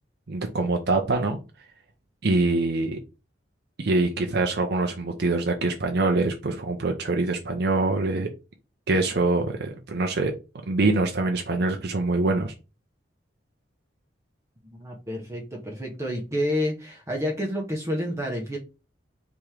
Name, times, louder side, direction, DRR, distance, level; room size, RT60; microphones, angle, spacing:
voice 1, 0.3-1.4 2.2-3.0 3.8-8.3 8.9-10.3 10.7-12.5, right 2 dB, 60° right, 3 dB, 0.6 m, -24 dB
voice 2, 14.7-18.6, equal, 15° right, -1 dB, 0.8 m, -29 dB
3.5 x 3.0 x 4.8 m, 0.31 s
head